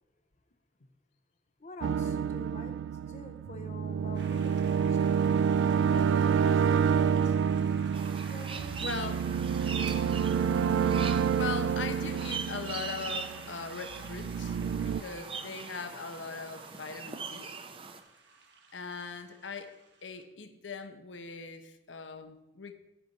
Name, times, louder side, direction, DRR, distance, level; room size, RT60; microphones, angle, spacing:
voice 1, 1.6-2.7 3.1-5.4 5.9-7.4 8.3-8.9, left 2 dB, 40° left, 6 dB, 0.7 m, -47 dB
sound 1, 1.8-13.5 13.9-15.0, right 7 dB, 90° right, 0.3 m, -28 dB
sound 2, 4.1-20.2, right 3 dB, 70° right, 1.6 m, -50 dB
sound 3, 7.9-18.0, right 5 dB, 30° right, 0.6 m, -42 dB
voice 2, 8.8-9.2 10.6-17.5 18.7-19.7 20.0-22.7, left 4 dB, 85° left, 8 dB, 1.0 m, -40 dB
10.0 x 10.0 x 4.1 m, 0.98 s
head